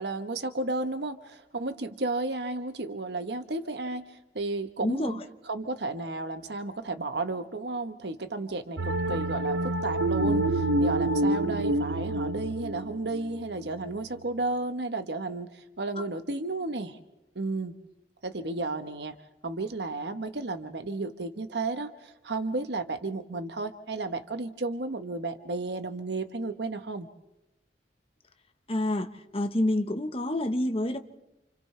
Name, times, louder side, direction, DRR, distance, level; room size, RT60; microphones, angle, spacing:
voice 1, 0.0-5.2 5.5-17.0 17.3-17.7 18.2-19.2 19.4-27.1, right 2 dB, 70° right, 1.1 m, -33 dB
voice 2, 4.8-5.2 28.7-29.1 29.3-31.0, left 1 dB, 35° left, 1.2 m, -27 dB
sound 1, 8.8-14.0, right 1 dB, 90° right, 0.8 m, -28 dB
29.0 x 28.5 x 3.3 m
head